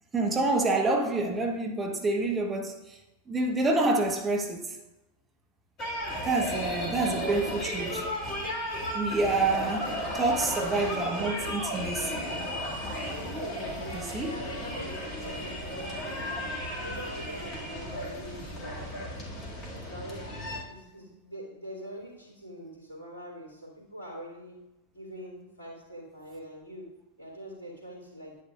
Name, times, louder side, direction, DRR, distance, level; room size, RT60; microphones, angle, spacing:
voice 1, 0.1-3.0 3.3-4.8 6.2-8.0 8.9-12.3 13.9-14.3, right 2 dB, 15° right, 1.0 m, -28 dB
sound 1, 5.8-20.6, equal, 35° left, 2.2 m, -34 dB
voice 2, 13.1-16.1 16.7-19.0 19.8-20.4 20.6-24.6 24.9-26.9 27.2-28.4, equal, 75° left, 2.6 m, -43 dB
10.0 x 9.3 x 2.4 m
figure-of-eight pair, 90°, 0 cm